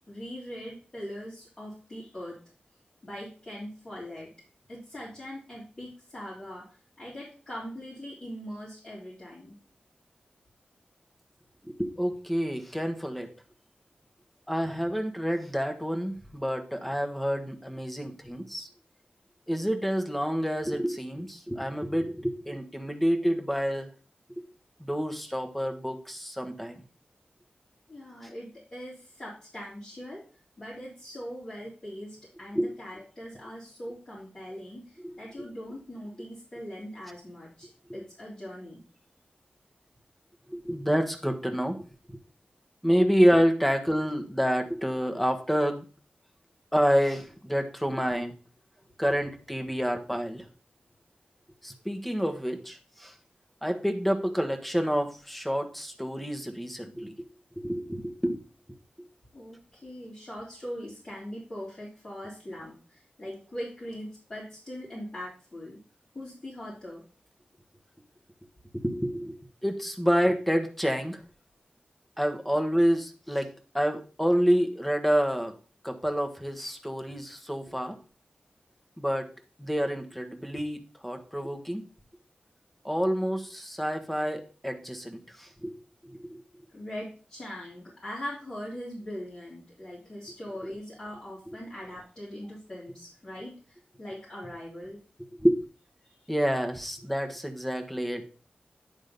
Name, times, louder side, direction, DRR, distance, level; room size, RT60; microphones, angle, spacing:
voice 1, 0.1-2.4 3.0-4.3 4.7-9.6 27.9-30.2 30.6-38.8 49.8-49.9 59.3-65.8 66.1-67.0 86.7-95.0 96.0-96.3, equal, 35° left, -9 dB, 3.4 m, -41 dB
voice 2, 11.8-13.3 14.5-18.7 19.5-23.9 24.8-26.8 32.5-32.7 35.0-35.1 40.5-41.8 42.8-45.8 46.7-48.3 49.0-50.5 51.6-53.1 53.6-57.1 57.6-58.4 68.8-71.2 72.2-75.6 75.8-78.0 79.0-79.3 79.6-81.9 82.8-85.7 86.0-86.4 95.4-95.6 96.3-98.2, equal, 5° left, 5 dB, 1.2 m, -28 dB
9.6 x 3.7 x 5.2 m, 0.38 s
wide cardioid pair, 80°, 3 cm